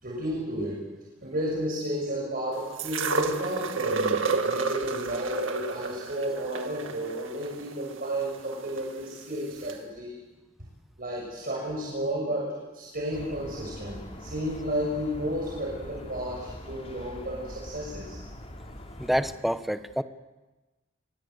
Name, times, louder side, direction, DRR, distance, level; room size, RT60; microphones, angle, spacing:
voice 1, 0.0-0.8 1.2-10.2 11.0-18.2, equal, 45° right, -2 dB, 6.9 m, -32 dB
sound 1, 2.8-8.8 9.7-9.8, right 4 dB, 75° right, 2.2 m, -30 dB
sound 2, 13.1-19.4, left 1 dB, 30° left, 3.8 m, -43 dB
voice 2, 19.0-20.0, equal, ahead, 10 dB, 1.1 m, -27 dB
27.5 x 24.0 x 8.1 m, 1.1 s
head